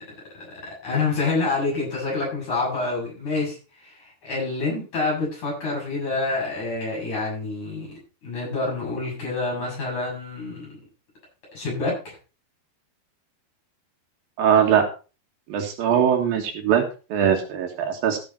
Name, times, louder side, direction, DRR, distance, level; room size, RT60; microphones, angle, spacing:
voice 1, 0.8-3.6 3.8-7.9 8.2-10.7 11.5-12.1, left 3 dB, 50° left, -3 dB, 8.3 m, -27 dB
voice 2, 14.4-14.9 15.5-16.8 17.1-18.2, right 8 dB, 70° right, 3 dB, 3.2 m, -21 dB
14.5 x 6.8 x 4.2 m, 0.33 s
omnidirectional pair, 4.5 m